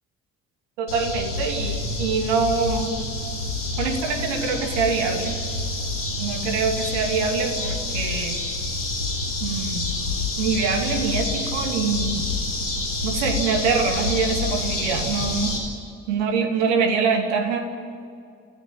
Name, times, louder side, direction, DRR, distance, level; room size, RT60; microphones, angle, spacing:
voice 1, 0.8-3.0 3.8-5.4 6.2-8.4 9.4-9.9 10.4-12.2 13.0-15.6 16.1-17.7, right 5 dB, 70° right, 4 dB, 2.8 m, -24 dB
sound 1, 0.9-15.6, left 3 dB, 90° left, 3.9 m, -28 dB
29.5 x 16.5 x 8.9 m, 2.4 s
figure-of-eight pair, 45°, 36 cm